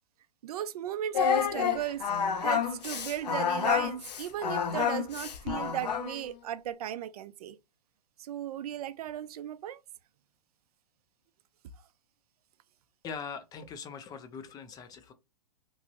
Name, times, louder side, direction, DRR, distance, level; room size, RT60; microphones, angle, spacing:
voice 1, 0.4-2.0 2.4-7.6 8.2-9.8, right 11 dB, 65° right, 0.4 m, -36 dB
Singing, 1.1-6.2, left 7 dB, 80° left, 0.6 m, -29 dB
voice 2, 13.0-15.1, left 6 dB, 20° left, 0.4 m, -41 dB
3.0 x 2.5 x 2.7 m
hypercardioid pair, 120°, 21 cm